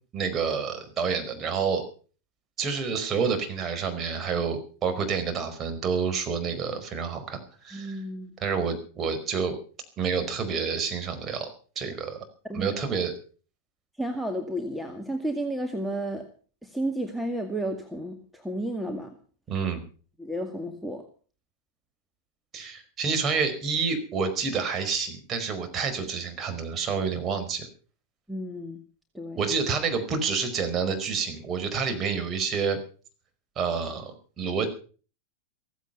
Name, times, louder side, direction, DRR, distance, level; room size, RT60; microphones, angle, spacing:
voice 1, 0.1-1.8 2.6-8.0 8.4-9.6 10.0-11.5 11.7-12.2 12.5-13.1 19.5-19.8 22.5-27.7 29.4-32.8 33.6-34.7, right 5 dB, 25° right, 6 dB, 4.8 m, -28 dB
voice 2, 7.7-8.3 12.5-12.8 14.0-16.2 16.6-19.1 20.2-21.0 28.3-28.8 29.1-29.4, right 1 dB, ahead, 4 dB, 2.1 m, -32 dB
16.0 x 15.5 x 5.7 m, 0.40 s
figure-of-eight pair, 90°, 0 cm